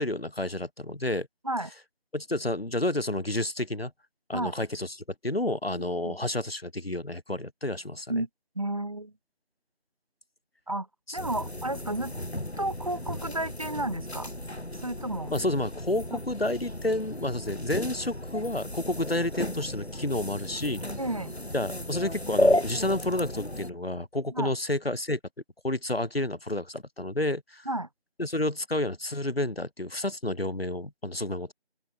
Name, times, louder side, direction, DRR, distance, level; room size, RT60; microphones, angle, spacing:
voice 1, 0.0-1.3 2.1-3.9 4.3-5.0 5.2-8.2 11.1-11.2 15.3-20.9 21.5-25.2 25.6-27.7 28.2-31.5, left 1 dB, 65° left, 4.1 m, -30 dB
voice 2, 8.6-9.1 10.7-10.9 11.1-12.1 12.6-14.3 14.8-15.3 16.1-16.2 21.0-21.3 24.3-24.5 27.7-27.9, right 1 dB, 35° right, 1.9 m, -32 dB
sound 1, 11.2-23.7, left 1 dB, 85° left, 6.2 m, -33 dB
open air
figure-of-eight pair, 170°, 32 cm